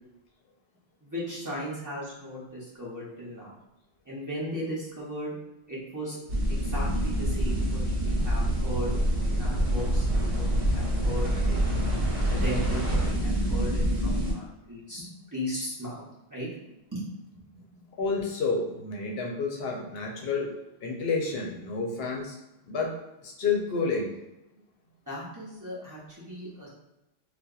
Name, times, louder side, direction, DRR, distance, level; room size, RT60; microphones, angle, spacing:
voice 1, 1.0-3.5 4.1-5.3 5.7-6.2 6.5-9.0 9.3-11.8 12.4-16.0 16.3-16.5 16.9-17.0 25.1-26.7, equal, 25° right, -8 dB, 0.5 m, -37 dB
sound 1, 6.3-14.3, right 1 dB, 60° right, 0.9 m, -26 dB
voice 2, 18.0-20.5 20.8-22.4 22.7-22.9 23.2-24.1, left 4 dB, 65° left, 0 dB, 0.7 m, -29 dB
2.7 x 2.1 x 2.3 m, 0.92 s
omnidirectional pair, 1.1 m